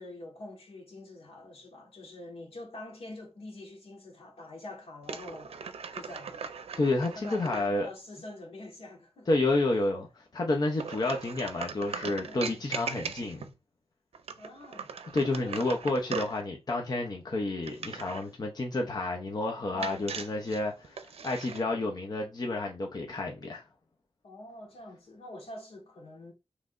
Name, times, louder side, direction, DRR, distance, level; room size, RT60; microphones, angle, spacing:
voice 1, 0.0-5.5 5.9-6.4 7.1-9.3 12.2-12.7 14.4-14.9 15.3-15.6 19.7-20.1 24.2-26.3, left 2 dB, 75° left, 1.6 m, -46 dB
sound 1, 5.0-7.7 10.7-13.5 14.1-16.4 17.6-18.3 19.8-21.6, right 6 dB, 85° right, 0.5 m, -39 dB
voice 2, 6.8-7.9 9.3-13.4 15.1-23.6, left 2 dB, 40° left, 0.8 m, -30 dB
5.8 x 3.2 x 2.6 m
wide cardioid pair, 100°, 10 cm